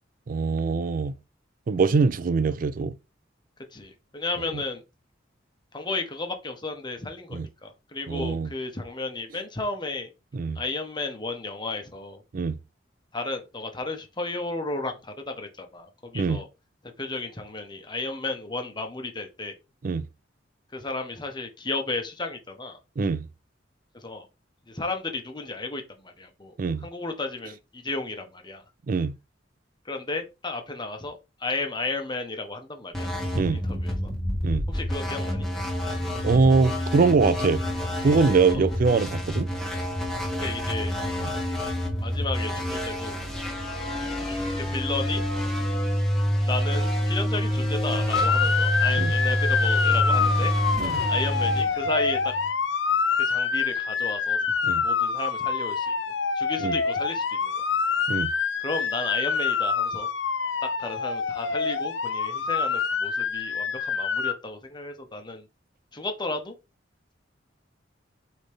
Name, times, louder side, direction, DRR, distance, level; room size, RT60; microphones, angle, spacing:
voice 1, 0.3-1.1 1.7-3.0 7.3-7.5 8.1-8.5 10.3-10.6 12.3-12.6 16.1-16.4 19.8-20.0 23.0-23.3 26.6-26.9 28.9-29.1 33.4-33.6 34.4-34.6 36.2-37.6 38.0-39.5 49.0-49.1 50.8-51.0 54.6-54.8 56.6-56.8 58.1-58.3, right 4 dB, 50° right, 0.4 m, -23 dB
voice 2, 3.7-4.8 5.7-10.1 10.5-12.2 13.1-16.5 17.0-19.5 20.7-22.8 23.9-24.2 24.7-26.5 26.8-28.6 29.8-33.1 33.5-34.1 34.7-35.5 38.5-38.7 40.3-40.9 42.0-43.2 44.3-45.2 46.4-50.5 51.1-52.3 53.2-54.4 54.8-56.0 56.3-57.6 58.6-60.1 60.6-65.5 65.9-66.5, left 3 dB, 25° left, 1.4 m, -33 dB
sound 1, 32.9-52.5, equal, ahead, 2.1 m, -27 dB
Motor vehicle (road) / Siren, 48.1-64.3, left 5 dB, 85° left, 0.8 m, -26 dB
8.3 x 4.1 x 3.7 m
head